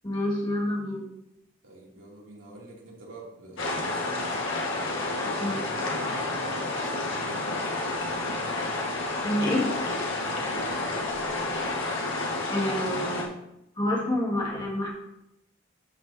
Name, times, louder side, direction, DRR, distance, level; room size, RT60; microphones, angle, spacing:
voice 1, 0.0-1.1 5.4-5.6 9.2-9.7 12.5-13.4 13.8-14.9, left 1 dB, 20° left, -3 dB, 1.9 m, -28 dB
voice 2, 1.6-4.4 4.7-5.5 5.9-7.7 10.1-10.7, right 2 dB, 75° right, -4 dB, 2.9 m, -45 dB
sound 1, 3.6-13.2, left 2 dB, 70° left, 1.6 m, -30 dB
12.5 x 6.2 x 2.8 m, 0.84 s
head